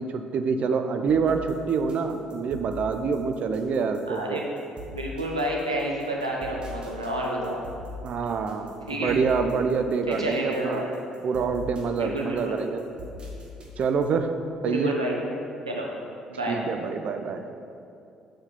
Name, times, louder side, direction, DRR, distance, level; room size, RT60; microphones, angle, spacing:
voice 1, 0.0-4.4 8.0-10.8 11.2-12.8 13.8-14.3 14.6-14.9 16.5-17.4, right 5 dB, 50° right, 7 dB, 0.5 m, -26 dB
sound 1, 1.1-14.2, left 2 dB, 35° right, 1.5 m, -42 dB
voice 2, 4.1-4.4 4.9-7.6 8.9-9.2 10.1-10.9 11.9-12.6 14.6-15.2 15.7-15.9 16.3-16.6, right 1 dB, 85° right, -2 dB, 0.8 m, -29 dB
7.1 x 5.2 x 5.6 m, 2.6 s
figure-of-eight pair, 45°, 3 cm